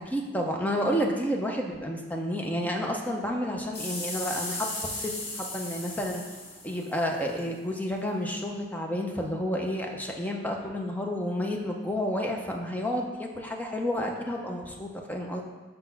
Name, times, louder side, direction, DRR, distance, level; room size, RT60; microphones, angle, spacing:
voice 1, 0.1-6.2 6.6-15.4, equal, 10° left, 1 dB, 0.6 m, -30 dB
sound 1, 3.7-7.4 8.1-8.2, left 2 dB, 85° left, 1.7 m, -36 dB
5.3 x 4.1 x 5.6 m, 1.3 s
head